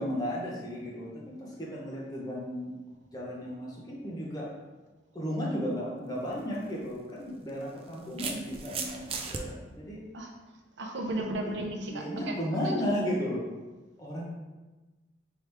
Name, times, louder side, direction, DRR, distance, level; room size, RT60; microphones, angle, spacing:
voice 1, 0.0-2.7 3.1-4.5 5.1-10.0 11.9-13.4 14.0-14.2, equal, 20° left, -5 dB, 0.9 m, -34 dB
sound 1, 6.2-6.4 7.5-9.4, right 5 dB, 30° right, 0.3 m, -36 dB
voice 2, 10.8-12.8, right 1 dB, 75° right, 3 dB, 0.6 m, -35 dB
4.7 x 3.1 x 3.4 m, 1.2 s
head